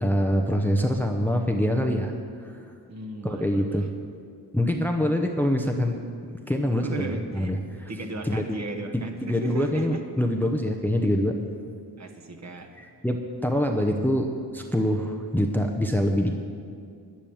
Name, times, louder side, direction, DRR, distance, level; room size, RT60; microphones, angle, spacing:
voice 1, 0.0-2.1 2.4-2.6 3.2-3.9 4.5-6.0 6.5-7.9 8.2-8.6 8.9-11.4 12.8-14.3 14.5-16.3, equal, 5° left, 4 dB, 0.8 m, -25 dB
voice 2, 2.9-3.9 6.8-7.5 7.9-10.0 12.0-12.8, right 2 dB, 40° right, 3 dB, 1.4 m, -36 dB
10.5 x 10.0 x 7.1 m, 2.3 s
cardioid pair, 95°, 42 cm